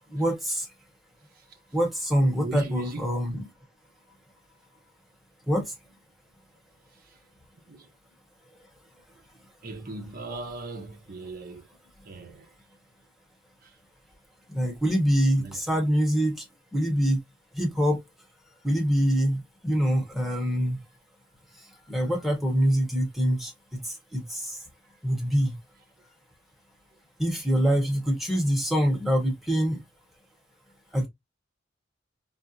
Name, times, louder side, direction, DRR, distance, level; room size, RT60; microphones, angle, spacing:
voice 1, 0.1-0.7 1.7-3.5 5.5-5.6 14.5-16.4 16.7-17.2 17.5-18.0 18.6-20.8 21.9-23.5 23.8-24.6 25.0-25.5 27.2-29.8 30.9-31.1, equal, ahead, 1.0 m, -25 dB
voice 2, 2.4-3.1 7.0-7.2 7.7-7.9 9.6-11.7 12.0-12.5 13.6-13.7 15.4-15.6, right 2 dB, 50° right, 0.8 m, -37 dB
4.0 x 2.0 x 2.6 m
head